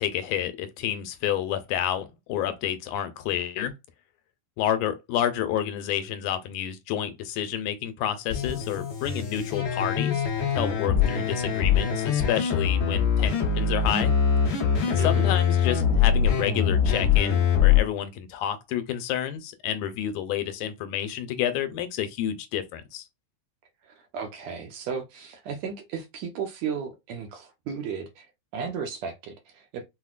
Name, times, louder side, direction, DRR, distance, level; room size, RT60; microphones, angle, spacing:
voice 1, 0.0-3.7 4.6-10.3 10.5-14.2 14.9-23.0, left 10 dB, 85° left, 2.1 m, -29 dB
sound 1, 8.3-17.8, left 7 dB, 55° left, 1.6 m, -23 dB
voice 2, 15.0-15.4 23.8-28.3 28.5-29.8, right 6 dB, 75° right, 1.8 m, -34 dB
5.8 x 2.1 x 2.4 m
omnidirectional pair, 3.4 m